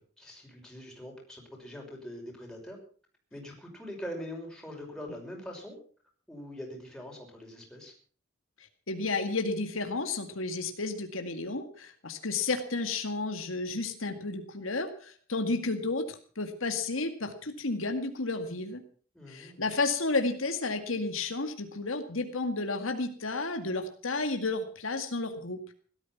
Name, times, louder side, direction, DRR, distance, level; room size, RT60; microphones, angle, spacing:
voice 1, 0.0-2.8 3.3-5.8 6.3-7.9 19.1-19.6, equal, 5° left, -1 dB, 5.7 m, -43 dB
voice 2, 8.9-18.8 19.3-25.6, left 3 dB, 75° left, 6 dB, 2.1 m, -32 dB
17.5 x 13.0 x 5.9 m, 0.43 s
head